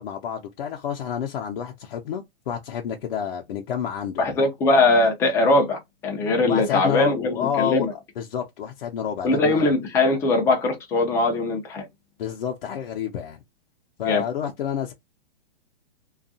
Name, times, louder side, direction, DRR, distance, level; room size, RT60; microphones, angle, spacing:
voice 1, 0.0-4.3 6.5-7.9 8.2-9.7 12.2-13.4 14.0-14.9, left 9 dB, 65° left, 0.6 m, -29 dB
voice 2, 4.2-7.9 9.2-11.9 14.0-14.2, left 2 dB, 10° left, 0.3 m, -21 dB
2.6 x 2.3 x 2.6 m
hypercardioid pair, 145°, 30 cm